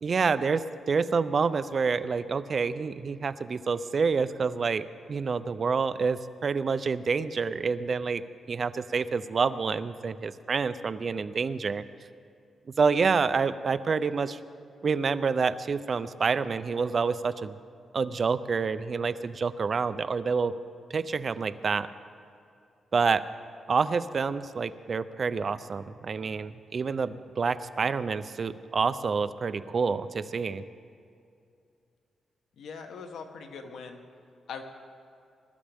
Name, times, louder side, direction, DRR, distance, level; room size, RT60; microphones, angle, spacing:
voice 1, 0.0-8.2 8.5-11.8 12.8-14.4 14.8-17.6 17.9-20.5 20.9-21.9 22.9-23.2 23.7-30.6, right 5 dB, 45° right, 13 dB, 0.5 m, -28 dB
voice 2, 32.6-34.0 34.5-34.6, left 5 dB, 85° left, 5 dB, 1.2 m, -41 dB
21.0 x 12.5 x 3.5 m, 2.5 s
cardioid pair, 120°, 0 cm